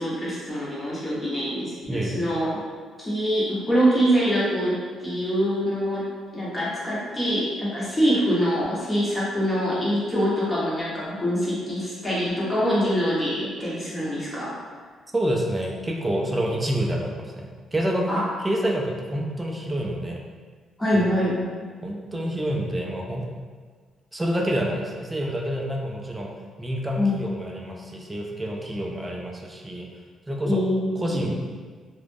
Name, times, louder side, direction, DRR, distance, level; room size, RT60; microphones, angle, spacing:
voice 1, 0.0-2.5 3.0-6.1 6.3-14.6 18.1-18.2 20.8-21.5 27.0-27.1 30.4-31.3, equal, 15° left, -8 dB, 1.0 m, -24 dB
voice 2, 1.9-2.2 15.1-18.1 18.4-20.2 20.9-21.1 21.8-23.3 24.1-26.3 26.6-29.9 30.3-30.6 31.0-31.4, right 1 dB, 15° right, 0 dB, 0.4 m, -28 dB
2.3 x 2.0 x 3.4 m, 1.5 s
cardioid pair, 90°, 0 cm